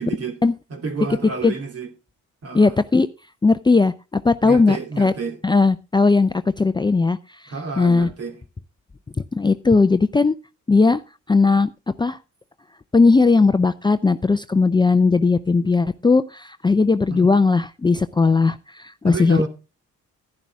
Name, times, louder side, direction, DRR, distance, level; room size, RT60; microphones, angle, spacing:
voice 1, 0.0-0.4 0.7-1.9 2.4-2.7 4.4-5.4 7.5-8.4 17.1-17.3 19.0-19.5, right 4 dB, 55° right, 2.6 m, -29 dB
voice 2, 2.5-3.1 3.4-5.1 5.4-7.2 7.4-8.1 9.3-10.3 10.7-11.0 11.3-11.7 12.0-12.2 12.9-19.5, left 4 dB, 15° left, 0.5 m, -18 dB
11.0 x 11.0 x 3.5 m
cardioid pair, 90°, 30 cm